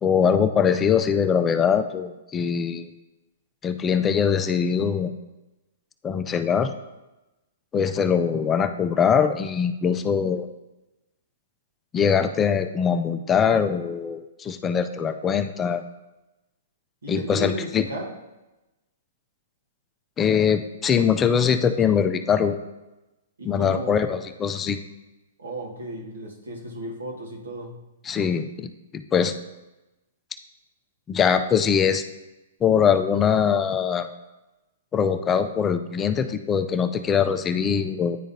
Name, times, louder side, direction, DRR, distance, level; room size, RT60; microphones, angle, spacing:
voice 1, 0.0-2.9 3.6-5.1 6.0-6.7 7.7-10.5 11.9-15.8 17.1-17.8 20.2-22.6 23.4-24.8 28.0-29.4 31.1-32.0 32.6-34.1 34.9-38.2, left 7 dB, 20° left, 9 dB, 0.4 m, -22 dB
voice 2, 17.0-18.1 23.4-24.1 25.4-27.8, right 1 dB, 85° right, 0 dB, 1.4 m, -34 dB
10.0 x 3.7 x 2.7 m, 1.0 s
hypercardioid pair, 130°, 0 cm